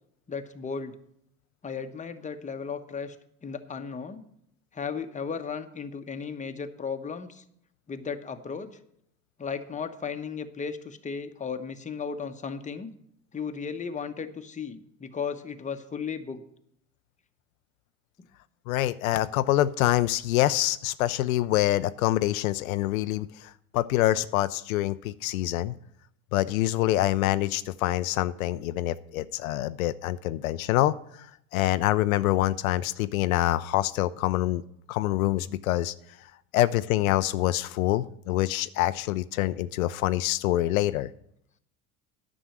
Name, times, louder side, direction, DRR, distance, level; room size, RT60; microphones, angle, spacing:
voice 1, 0.3-0.9 1.6-3.2 3.4-4.2 4.7-7.4 7.9-8.7 9.4-12.9 13.3-16.4, left 6 dB, 15° left, 7 dB, 1.0 m, -35 dB
voice 2, 18.7-25.8 26.3-31.3 31.5-34.6 34.9-35.9 36.5-41.1, left 15 dB, 80° left, 14 dB, 0.5 m, -26 dB
10.0 x 6.2 x 7.3 m, 0.71 s
hypercardioid pair, 75°, 42 cm